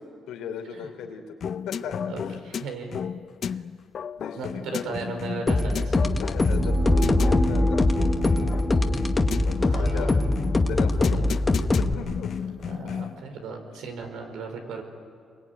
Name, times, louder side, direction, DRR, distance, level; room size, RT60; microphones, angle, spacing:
voice 1, 0.3-1.4 1.7-2.4 4.2-4.9 6.2-8.7 9.4-10.2 10.6-11.4 11.8-12.3 12.9-13.0, left 7 dB, 90° left, 3 dB, 3.6 m, -37 dB
sound 1, 1.4-13.2, left 7 dB, 60° left, 0.7 m, -34 dB
voice 2, 2.1-3.0 3.5-3.6 4.3-5.9 9.6-10.7 11.1-11.2 12.6-14.8, right 3 dB, 85° right, 4 dB, 4.8 m, -36 dB
sound 2, 5.5-11.9, left 2 dB, 25° left, 1.6 m, -23 dB
sound 3, 6.1-12.0, equal, 10° right, 3.1 m, -28 dB
27.0 x 23.0 x 9.7 m, 2.3 s
cardioid pair, 90°, 0 cm